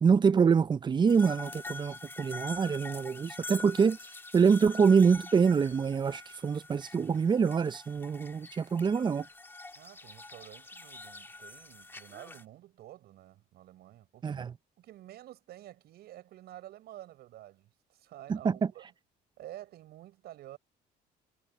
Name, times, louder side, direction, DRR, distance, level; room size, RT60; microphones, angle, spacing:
voice 1, 0.0-4.0 4.3-9.3 14.2-14.5 18.3-18.6, right 6 dB, 25° right, 0.6 m, -25 dB
sound 1, 1.1-12.4, left 2 dB, 15° left, 1.5 m, -45 dB
voice 2, 9.7-14.4 14.8-18.9 19.4-20.6, right 14 dB, 70° right, 6.3 m, -50 dB
cardioid pair, 110°, 17 cm